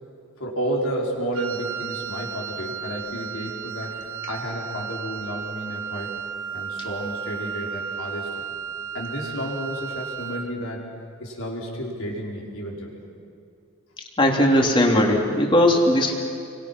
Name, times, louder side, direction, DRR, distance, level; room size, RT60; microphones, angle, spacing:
voice 1, 0.4-3.9 4.3-6.2 6.5-8.4 8.9-10.8 11.2-13.0, equal, 75° left, -2 dB, 5.0 m, -31 dB
Wind instrument woodwind instrument, 1.3-10.6, right 7 dB, 75° right, 1.3 m, -34 dB
voice 2, 14.2-16.1, left 1 dB, 25° left, 1 dB, 2.9 m, -18 dB
29.5 x 24.0 x 6.1 m, 2.5 s
head